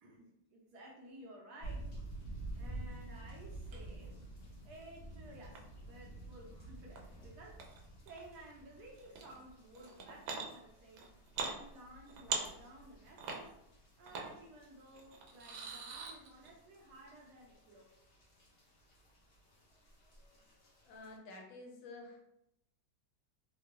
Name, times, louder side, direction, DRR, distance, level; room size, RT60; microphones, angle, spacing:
voice 1, 0.0-1.9 2.5-11.1 11.4-13.6 14.0-18.0, right 1 dB, 65° right, -1 dB, 1.1 m, -55 dB
sound 1, 1.6-21.2, right 2 dB, 45° left, 0.7 m, -51 dB
sound 2, 3.7-3.9 4.4-5.6 7.0-7.1 7.6-8.4 9.0-9.4 9.7-10.5 10.9-11.5 11.9-12.9 13.2-13.4 14.1-14.3 14.9-16.5, right 5 dB, 85° right, 1.4 m, -42 dB
voice 2, 20.8-22.2, left 2 dB, 80° left, 1 dB, 1.5 m, -50 dB
3.4 x 2.3 x 2.9 m, 0.81 s
omnidirectional pair, 2.0 m